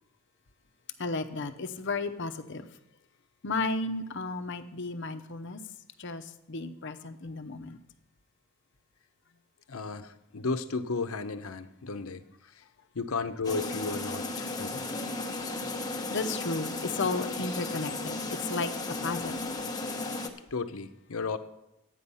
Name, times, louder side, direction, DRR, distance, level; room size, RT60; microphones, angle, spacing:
voice 1, 1.0-2.7 3.4-5.6 6.0-7.8 16.1-19.5, left 3 dB, 60° left, 8 dB, 0.8 m, -34 dB
voice 2, 9.7-12.6 12.9-14.9 20.5-21.4, left 4 dB, 85° left, 10 dB, 0.8 m, -34 dB
sound 1, 13.4-20.3, left 2 dB, 20° left, 1.0 m, -35 dB
12.0 x 9.2 x 5.5 m, 0.89 s
head